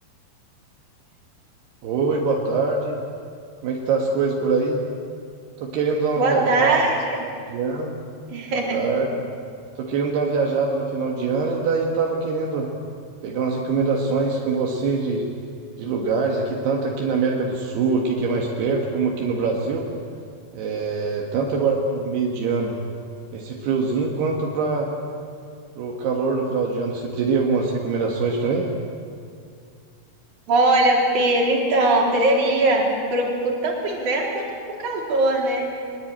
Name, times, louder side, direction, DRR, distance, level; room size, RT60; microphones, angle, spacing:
voice 1, 1.8-3.0 3.6-4.8 5.6-6.8 7.5-7.9 8.5-9.1 9.8-12.7 13.2-15.3 15.8-19.9 20.5-22.8 23.3-24.9 25.8-28.7, right 4 dB, 75° right, 0 dB, 3.8 m, -23 dB
voice 2, 6.2-7.2 8.3-8.8 30.5-34.5 34.8-35.7, right 2 dB, 50° right, -1 dB, 5.0 m, -20 dB
23.0 x 21.5 x 8.9 m, 2.3 s
omnidirectional pair, 4.6 m